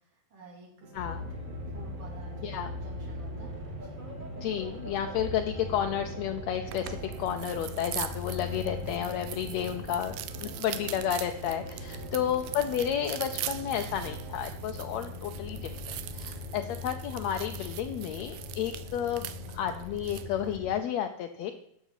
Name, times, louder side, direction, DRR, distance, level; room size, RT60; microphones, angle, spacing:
voice 1, 0.3-1.2 1.7-4.0 12.1-12.4, right 2 dB, 55° right, -1 dB, 4.4 m, -52 dB
sound 1, 0.8-14.4, right 2 dB, 35° right, 2.1 m, -49 dB
sound 2, 0.9-20.8, left 1 dB, 20° right, 1.5 m, -40 dB
voice 2, 4.4-10.1 10.4-21.5, left 9 dB, 75° left, 6 dB, 1.8 m, -32 dB
sound 3, 6.7-20.3, right 13 dB, 75° right, 2.0 m, -42 dB
13.0 x 6.0 x 8.2 m, 0.71 s
omnidirectional pair, 3.4 m